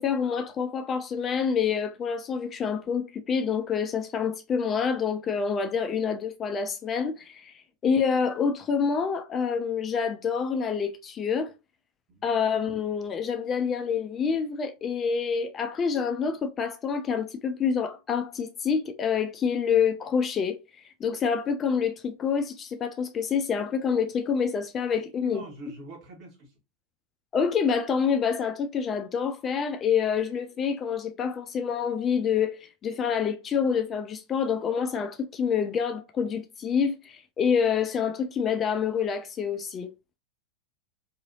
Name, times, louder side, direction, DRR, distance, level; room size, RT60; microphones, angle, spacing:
voice 1, 0.0-11.5 12.2-20.6 20.8-25.4 27.3-39.9, left 6 dB, 25° left, 0.4 m, -27 dB
voice 2, 25.2-26.5, right 1 dB, 40° right, 1.4 m, -44 dB
2.8 x 2.6 x 2.6 m
figure-of-eight pair, 90°, 0 cm